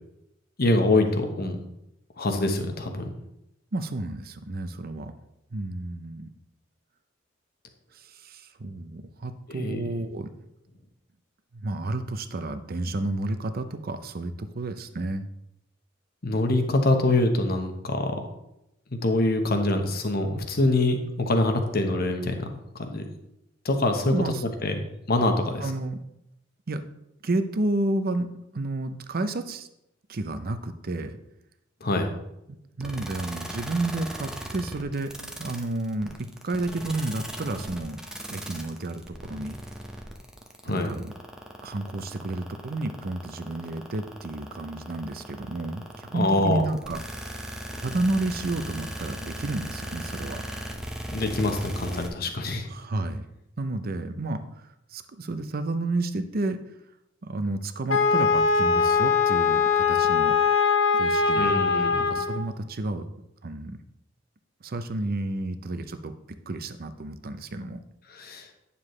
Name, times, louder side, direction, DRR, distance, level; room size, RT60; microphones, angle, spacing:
voice 1, 0.6-1.6 2.2-3.1 9.5-9.8 16.2-18.1 18.9-22.5 22.7-23.0 23.6-24.1 24.6-24.7 25.1-25.7 31.8-32.1 40.6-40.9 46.1-46.6 51.1-52.7 61.4-62.2 68.1-68.5, left 2 dB, 50° left, 5 dB, 1.1 m, -24 dB
voice 2, 3.7-5.1 5.5-6.3 7.9-10.3 11.5-15.3 24.0-24.4 25.6-26.0 26.7-26.8 27.2-28.3 28.5-29.7 30.1-31.2 32.5-35.1 35.4-38.0 38.3-39.6 40.6-41.1 41.6-47.5 47.8-50.4 52.7-53.2 53.6-54.4 54.9-56.6 57.2-60.3 60.9-61.5 62.0-63.1 63.4-63.8 64.6-67.8, right 2 dB, 50° right, 10 dB, 0.6 m, -31 dB
sound 1, 32.8-52.1, equal, 5° right, 0.8 m, -37 dB
Wind instrument woodwind instrument, 57.9-62.4, left 5 dB, 80° left, 0.8 m, -22 dB
9.7 x 6.9 x 3.2 m, 0.85 s
head